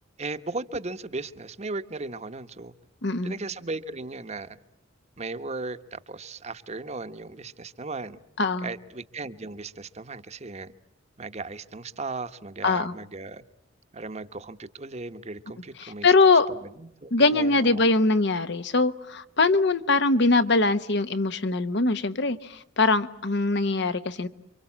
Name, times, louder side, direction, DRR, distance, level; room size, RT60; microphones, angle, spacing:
voice 1, 0.2-2.7 3.2-4.6 5.2-8.2 8.6-10.7 11.2-13.4 13.9-16.1 16.8-17.8, right 3 dB, 35° right, 1.0 m, -36 dB
voice 2, 3.0-3.3 8.4-8.7 12.6-12.9 15.8-16.5 17.1-24.3, left 3 dB, 60° left, 1.1 m, -22 dB
28.5 x 25.0 x 7.4 m
head